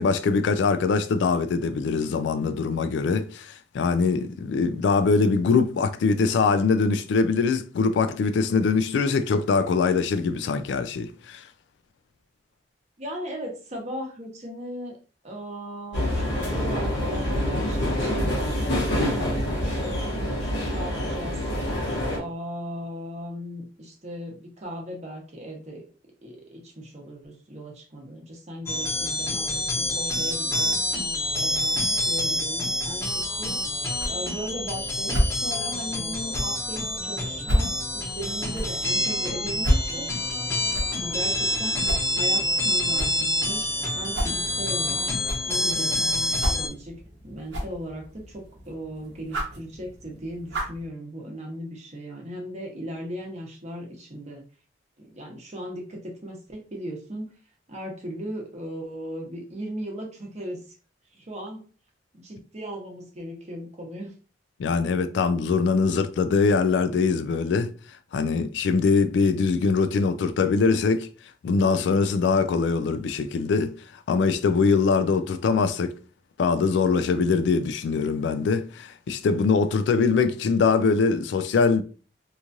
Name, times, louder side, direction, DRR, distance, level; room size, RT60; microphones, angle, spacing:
voice 1, 0.0-11.5 64.6-67.7 68.1-71.1 71.4-75.9 76.4-81.8, left 4 dB, 70° left, 0.3 m, -23 dB
voice 2, 13.0-15.0 15.2-21.4 22.1-25.8 26.2-30.8 31.4-33.6 34.1-40.1 41.0-45.1 45.4-45.9 46.3-54.4 55.0-57.3 57.7-60.6 61.1-61.6 62.1-64.1, equal, 40° right, 0.9 m, -37 dB
sound 1, 15.9-22.2, left 1 dB, 90° left, 1.1 m, -26 dB
sound 2, 28.7-46.7, left 1 dB, 15° left, 0.7 m, -27 dB
sound 3, 32.9-50.9, equal, 70° right, 0.9 m, -33 dB
3.0 x 2.3 x 2.6 m
head